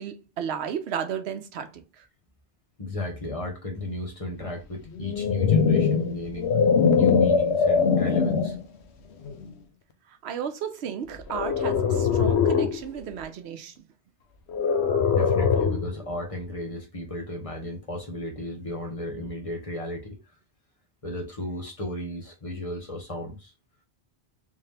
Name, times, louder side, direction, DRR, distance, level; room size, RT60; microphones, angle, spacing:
voice 1, 0.0-2.1 10.1-13.9, right 8 dB, 85° right, 0.9 m, -34 dB
voice 2, 2.8-6.5 6.9-8.6 15.1-20.2 21.0-23.5, left 1 dB, 35° left, 0.9 m, -34 dB
sound 1, 5.0-8.6 9.2-9.5 11.3-12.8 14.5-16.0, left 6 dB, 85° left, 0.9 m, -22 dB
3.6 x 2.8 x 3.2 m
omnidirectional pair, 1.1 m